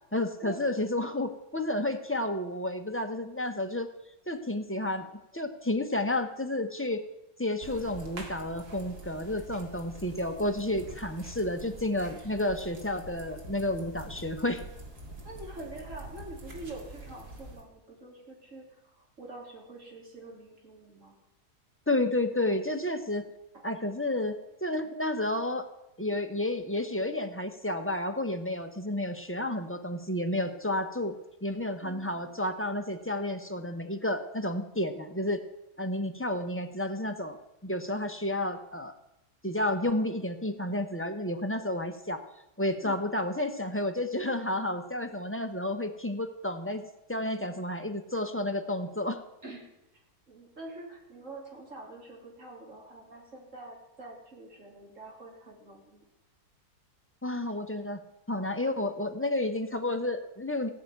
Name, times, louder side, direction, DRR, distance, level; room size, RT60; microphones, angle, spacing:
voice 1, 0.1-3.9 4.3-5.1 5.3-7.0 7.4-14.6 21.9-23.2 23.6-25.7 26.0-31.1 31.4-35.4 35.8-37.4 37.6-38.9 39.4-42.2 42.6-46.8 47.1-49.2 57.2-58.0 58.3-60.7, left 1 dB, 10° left, 5 dB, 0.8 m, -31 dB
sound 1, 7.6-17.6, right 1 dB, 75° right, 2.7 m, -45 dB
voice 2, 15.2-18.7 19.2-21.1 23.5-23.6 31.8-32.4 42.8-43.0 49.4-49.7 50.3-56.0, right 2 dB, 50° right, -1 dB, 3.6 m, -45 dB
16.5 x 6.0 x 9.3 m, 0.88 s
omnidirectional pair, 1.7 m